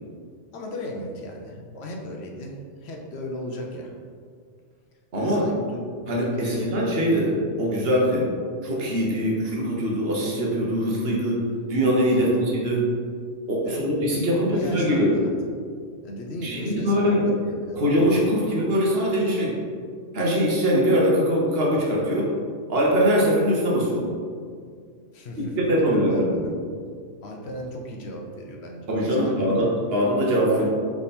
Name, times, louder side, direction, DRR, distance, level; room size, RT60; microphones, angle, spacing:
voice 1, 0.5-3.9 5.2-5.8 6.3-6.7 12.1-12.3 13.6-13.8 14.3-15.3 16.0-17.8 25.1-25.6 26.1-26.5 27.2-29.8 30.5-30.7, left 1 dB, 65° left, 1 dB, 0.9 m, -36 dB
voice 2, 5.1-5.5 6.1-8.3 8.6-11.4 11.7-12.9 13.5-15.2 16.4-17.3 17.8-19.5 20.1-22.3 22.7-24.1 25.4-26.4 28.9-30.7, equal, 60° right, -4 dB, 1.1 m, -22 dB
3.6 x 3.5 x 4.1 m, 2.1 s
omnidirectional pair, 1.2 m